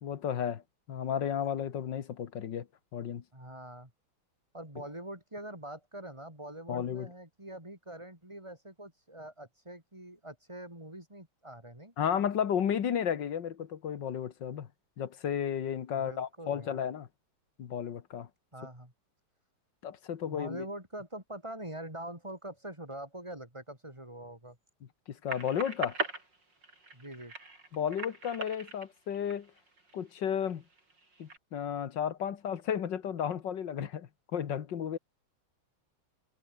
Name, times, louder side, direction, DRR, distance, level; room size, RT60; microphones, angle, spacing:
voice 1, 0.0-0.6 0.9-2.7 2.9-3.2 6.7-7.1 12.0-14.7 15.0-17.1 17.6-18.3 19.8-20.7 25.1-26.0 27.7-29.5 29.9-30.6 31.2-35.0, left 8 dB, 60° left, 2.0 m, -33 dB
voice 2, 3.3-3.9 4.5-11.9 15.9-16.8 18.5-18.9 20.2-24.6 26.9-27.3, right 1 dB, 15° right, 6.1 m, -44 dB
sound 1, 25.3-30.0 30.5-31.4, right 3 dB, 55° right, 6.6 m, -40 dB
omnidirectional pair, 2.3 m